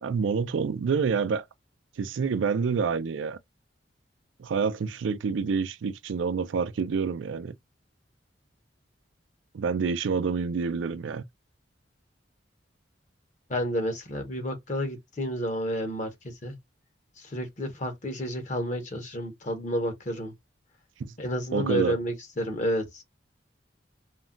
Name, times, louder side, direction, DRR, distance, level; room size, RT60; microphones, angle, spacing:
voice 1, 0.0-1.5 2.0-3.4 4.4-7.5 9.5-11.2 21.0-21.1 21.5-22.0, right 5 dB, 90° right, 0.4 m, -27 dB
voice 2, 13.5-16.6 17.2-20.3 21.2-23.0, equal, 40° left, 0.7 m, -30 dB
2.3 x 2.1 x 3.6 m
head